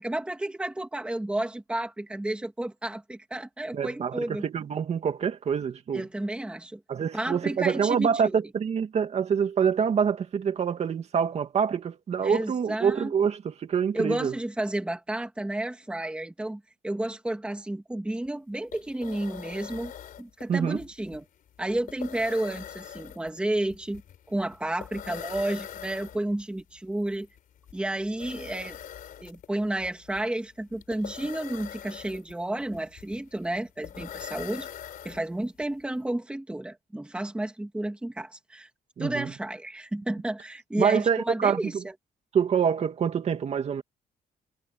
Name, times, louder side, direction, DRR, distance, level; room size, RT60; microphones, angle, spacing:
voice 1, 0.0-4.4 5.9-6.8 7.1-8.4 12.2-13.1 13.9-19.9 20.2-21.3 21.6-24.0 24.3-27.3 27.7-28.8 29.2-34.7 35.0-38.7 39.0-41.9, right 1 dB, 5° right, 1.9 m, -31 dB
voice 2, 3.7-6.1 6.9-14.3 20.5-20.8 39.0-39.3 40.8-41.8 42.3-43.8, right 7 dB, 45° right, 2.3 m, -26 dB
sound 1, 18.2-18.3 18.5-35.6, left 9 dB, 65° left, 3.7 m, -43 dB
cardioid pair, 175°, 16 cm